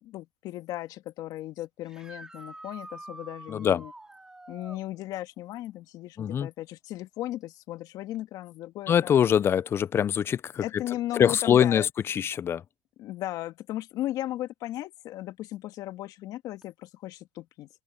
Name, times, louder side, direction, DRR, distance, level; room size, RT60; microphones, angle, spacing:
voice 1, 0.0-3.9 4.5-9.2 10.6-11.9 13.0-17.7, left 14 dB, 55° left, 2.0 m, -36 dB
sound 1, 1.8-4.8 8.1-8.2 10.3-10.4 16.6-16.7, right 2 dB, 10° right, 2.6 m, -46 dB
voice 2, 3.5-3.8 6.2-6.5 8.9-10.6 11.1-12.6, left 9 dB, 30° left, 0.5 m, -23 dB
open air
supercardioid pair, 105°, 8 cm